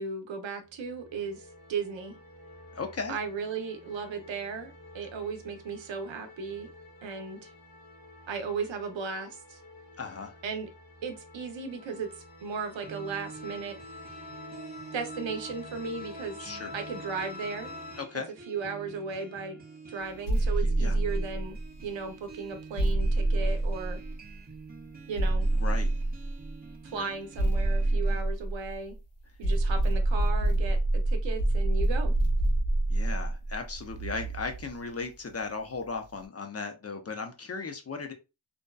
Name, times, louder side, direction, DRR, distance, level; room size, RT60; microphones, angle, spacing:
voice 1, 0.0-2.1 3.1-6.7 7.0-7.5 8.3-9.6 10.4-10.7 11.0-12.1 12.4-13.8 14.9-17.7 18.5-21.6 21.8-24.0 25.1-25.5 26.9-28.9 29.4-32.1, right 5 dB, 80° right, 6 dB, 0.7 m, -36 dB
sound 1, 0.7-18.0, left 2 dB, 50° left, 0.9 m, -48 dB
voice 2, 2.7-3.2 10.0-10.3 16.4-16.7 18.0-18.3 20.6-21.0 25.5-25.9 26.9-27.1 32.9-38.1, left 4 dB, 35° left, 5 dB, 0.5 m, -36 dB
sound 2, 12.8-28.2, right 5 dB, 20° right, 0.7 m, -47 dB
sound 3, 20.3-21.8 22.8-24.4 25.2-26.5 27.4-29.0 29.4-34.7, right 2 dB, 80° left, 0.9 m, -26 dB
2.6 x 2.2 x 2.2 m, 0.27 s
cardioid pair, 65°, 45 cm